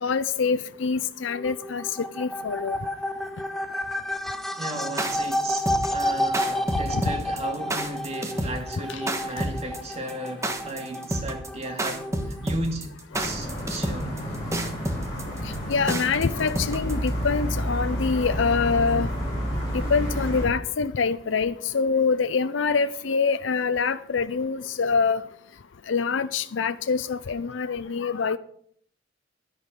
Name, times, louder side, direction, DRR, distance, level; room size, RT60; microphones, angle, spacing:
voice 1, 0.0-2.8 6.9-7.0 8.9-9.0 15.7-19.1 19.7-25.2 25.9-28.4, left 5 dB, 85° left, 0.6 m, -25 dB
sound 1, 1.3-12.6, left 1 dB, ahead, 0.6 m, -31 dB
voice 2, 4.6-14.2, right 2 dB, 35° right, 2.2 m, -35 dB
sound 2, 4.8-17.1, right 1 dB, 15° right, 1.4 m, -29 dB
sound 3, 13.1-20.5, equal, 20° left, 6.9 m, -30 dB
11.5 x 11.0 x 5.2 m
head